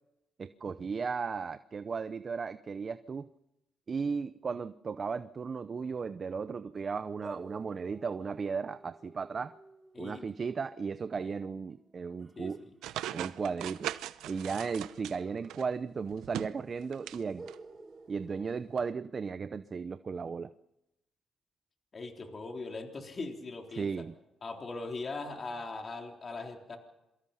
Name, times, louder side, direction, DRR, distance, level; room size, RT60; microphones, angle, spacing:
voice 1, 0.4-3.3 3.9-9.5 10.0-12.6 13.1-13.9 14.3-17.5 18.1-20.5 23.7-24.1, right 5 dB, 40° right, 12 dB, 0.7 m, -35 dB
sound 1, 7.2-12.6 14.9-16.3 16.6-16.7 17.4-19.5, right 3 dB, 25° right, 2.3 m, -53 dB
voice 2, 9.9-10.3 12.4-12.7 21.9-23.9 24.4-26.8, left 3 dB, 35° left, 2 dB, 3.7 m, -40 dB
sound 2, 12.8-15.6 16.1-17.2 17.5-17.6 18.8-18.9, right 13 dB, 90° right, 0.8 m, -39 dB
27.5 x 23.5 x 5.7 m, 0.91 s
cardioid pair, 90°, 0 cm